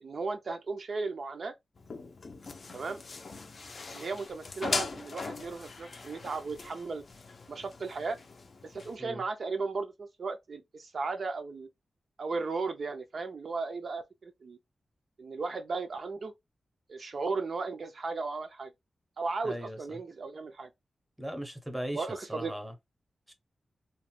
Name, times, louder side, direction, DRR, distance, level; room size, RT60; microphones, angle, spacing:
voice 1, 0.0-1.5 2.7-3.0 3.9-7.0 7.5-8.2 8.6-11.7 12.2-14.6 15.2-16.3 16.9-18.7 19.2-20.7 21.9-22.5, right 4 dB, 55° right, 0.4 m, -35 dB
sound 1, 1.8-9.0, left 4 dB, 50° left, 0.4 m, -40 dB
voice 2, 19.4-20.0 21.2-22.7 23.3-23.4, equal, 5° right, 0.6 m, -38 dB
2.9 x 2.0 x 2.9 m
wide cardioid pair, 135°, 0 cm